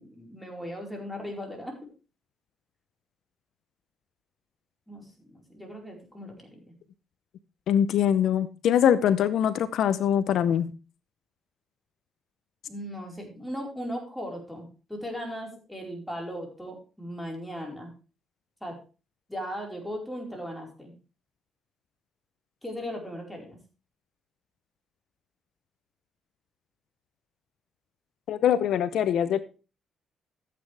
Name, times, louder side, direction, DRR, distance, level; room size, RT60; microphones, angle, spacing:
voice 1, 0.0-1.8 4.9-6.6 12.7-17.9 18.6-18.8 19.3-20.9 22.6-23.6, equal, 5° left, 0 dB, 4.6 m, -37 dB
voice 2, 7.7-10.7 28.3-29.4, left 9 dB, 75° left, 14 dB, 0.6 m, -23 dB
14.0 x 8.5 x 3.4 m, 0.33 s
cardioid pair, 90°, 0 cm